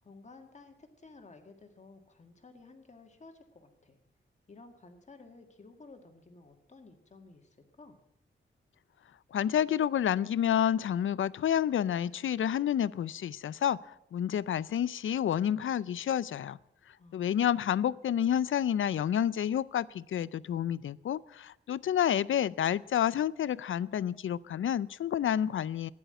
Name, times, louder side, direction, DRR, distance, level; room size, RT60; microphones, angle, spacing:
voice 1, 0.0-4.0 4.5-8.0 17.0-17.6, left 3 dB, 35° left, 5 dB, 1.9 m, -54 dB
voice 2, 9.3-16.6 17.1-25.9, left 10 dB, 80° left, 20 dB, 0.5 m, -29 dB
15.5 x 10.5 x 7.8 m, 0.82 s
wide cardioid pair, 170°, 20 cm